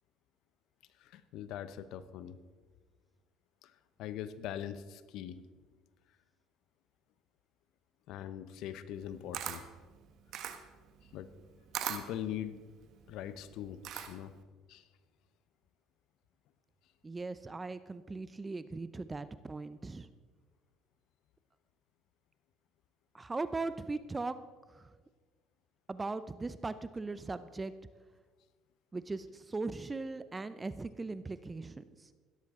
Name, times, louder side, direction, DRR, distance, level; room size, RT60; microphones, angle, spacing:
voice 1, 1.0-2.4 3.6-5.5 8.1-9.7 11.1-11.3 11.9-12.6 13.1-14.3 14.7-14.9, left 10 dB, 70° left, 13 dB, 0.8 m, -42 dB
Camera, 8.9-14.4, right 10 dB, 65° right, 1.2 m, -41 dB
voice 2, 17.0-20.1 23.1-24.4 24.7-24.9 25.9-27.7 28.9-31.8, right 3 dB, 20° right, 14 dB, 0.6 m, -39 dB
16.5 x 12.5 x 3.8 m, 1.5 s
hypercardioid pair, 70°, 0 cm